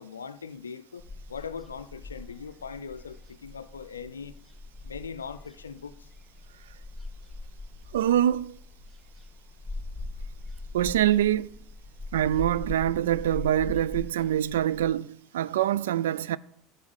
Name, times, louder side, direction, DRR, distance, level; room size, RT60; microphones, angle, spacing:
voice 1, 0.0-4.4 4.8-6.1, left 6 dB, 90° left, 0.4 m, -40 dB
sound 1, 1.0-14.9, left 2 dB, 10° right, 3.0 m, -41 dB
voice 2, 7.9-8.6 10.7-11.5 12.1-16.4, right 11 dB, 80° right, 0.3 m, -25 dB
10.5 x 4.3 x 7.9 m
hypercardioid pair, 75°, 0 cm